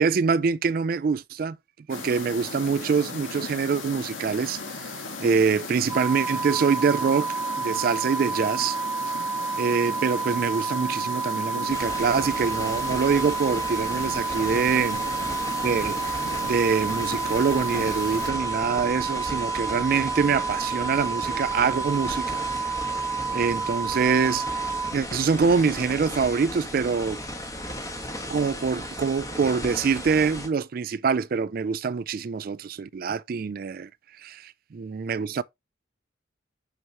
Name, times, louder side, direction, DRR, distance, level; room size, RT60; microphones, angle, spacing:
voice 1, 0.0-1.6 1.9-8.8 9.6-15.0 15.6-16.0 16.4-22.8 23.3-24.5 24.9-27.2 28.3-33.9 34.2-35.4, right 5 dB, 45° right, 0.3 m, -25 dB
sound 1, 1.9-18.3, left 4 dB, 85° left, 1.9 m, -37 dB
sound 2, 5.9-24.9, right 5 dB, 10° right, 0.8 m, -30 dB
sound 3, 11.7-30.5, left 1 dB, 15° left, 1.4 m, -36 dB
6.2 x 5.9 x 2.9 m
head